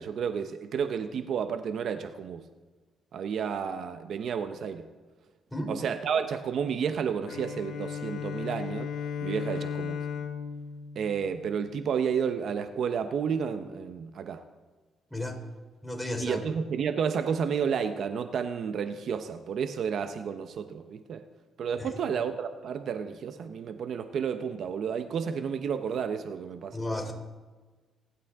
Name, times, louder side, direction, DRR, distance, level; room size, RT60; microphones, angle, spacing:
voice 1, 0.0-2.5 3.1-4.9 5.7-8.9 9.2-10.0 10.9-14.4 16.2-21.2 21.6-26.8, right 7 dB, 65° right, 9 dB, 1.0 m, -31 dB
Bowed string instrument, 7.3-12.0, left 7 dB, 75° left, 1.6 m, -36 dB
voice 2, 15.8-16.4 21.8-22.0 26.7-27.1, left 1 dB, 5° left, 3 dB, 3.2 m, -33 dB
29.0 x 11.5 x 3.7 m, 1.3 s
cardioid pair, 90°, 0 cm